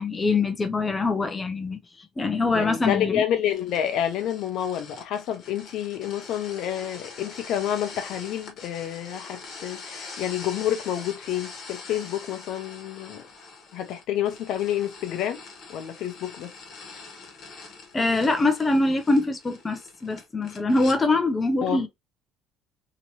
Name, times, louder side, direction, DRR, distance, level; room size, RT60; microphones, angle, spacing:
voice 1, 0.0-1.8 2.2-3.2 17.9-21.9, left 3 dB, 15° left, 0.4 m, -23 dB
voice 2, 2.5-13.2 13.7-15.4 15.7-16.5 21.6-21.8, left 10 dB, 60° left, 0.6 m, -29 dB
sound 1, 3.5-21.0, left 4 dB, 45° left, 1.0 m, -44 dB
2.9 x 2.7 x 2.8 m
cardioid pair, 160°, 0 cm